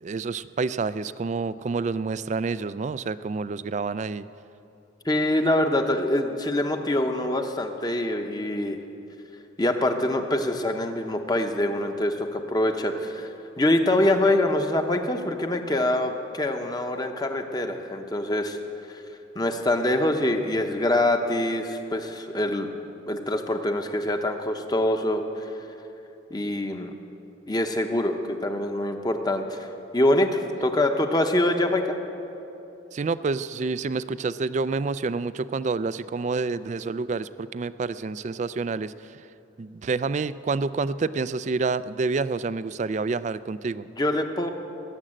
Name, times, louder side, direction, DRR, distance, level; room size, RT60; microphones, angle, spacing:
voice 1, 0.0-4.3 32.9-39.2 39.6-43.8, right 4 dB, 35° right, 15 dB, 0.3 m, -28 dB
voice 2, 5.0-8.8 9.6-13.3 13.6-18.6 18.9-19.0 19.3-22.8 23.1-25.5 26.3-26.9 27.5-29.7 29.9-32.0 43.9-44.5, left 1 dB, 20° left, 5 dB, 0.8 m, -25 dB
19.0 x 7.5 x 8.8 m, 2.9 s
head